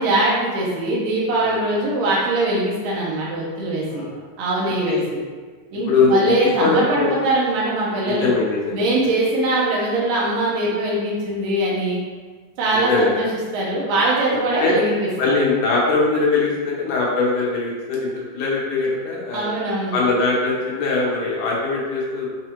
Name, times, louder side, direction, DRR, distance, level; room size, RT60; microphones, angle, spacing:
voice 1, 0.0-4.1 4.4-5.2 5.7-8.3 8.7-12.0 12.6-13.3 13.5-15.0 15.3-15.4 19.3-20.0, right 2 dB, 85° right, -5 dB, 2.5 m, -21 dB
voice 2, 4.7-5.0 5.9-7.2 8.0-8.9 12.7-13.1 14.2-14.8 15.2-19.5 19.9-22.3, left 3 dB, 75° left, -4 dB, 2.2 m, -21 dB
6.5 x 2.3 x 3.0 m, 1.5 s
omnidirectional pair, 3.9 m